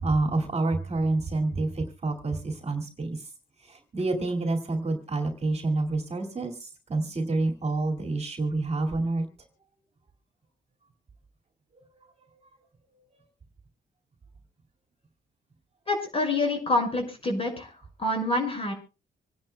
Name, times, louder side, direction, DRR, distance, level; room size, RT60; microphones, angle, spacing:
voice 1, 0.0-3.2 3.6-9.3, right 2 dB, 35° right, 2 dB, 2.2 m, -28 dB
voice 2, 15.9-17.7 18.0-18.7, left 2 dB, 30° left, 1 dB, 5.7 m, -26 dB
26.5 x 10.5 x 2.2 m, 0.31 s
cardioid pair, 110°, 19 cm